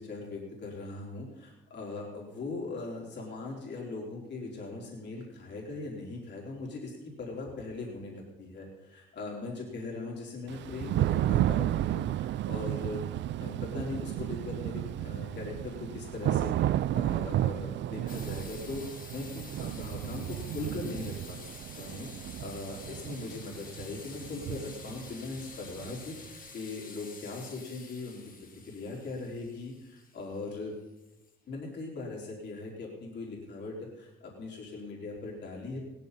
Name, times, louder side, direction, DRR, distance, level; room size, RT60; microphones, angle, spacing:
voice 1, 0.0-13.0 13.4-18.9 19.1-21.5 21.8-28.2 28.7-30.7 31.5-35.8, left 3 dB, 60° left, -3 dB, 4.1 m, -40 dB
Thunder / Rain, 10.5-26.3, right 13 dB, 65° right, 0.4 m, -32 dB
sound 1, 18.1-31.5, left 4 dB, 45° left, 1.8 m, -50 dB
17.5 x 14.0 x 4.2 m, 0.98 s
cardioid pair, 90°, 20 cm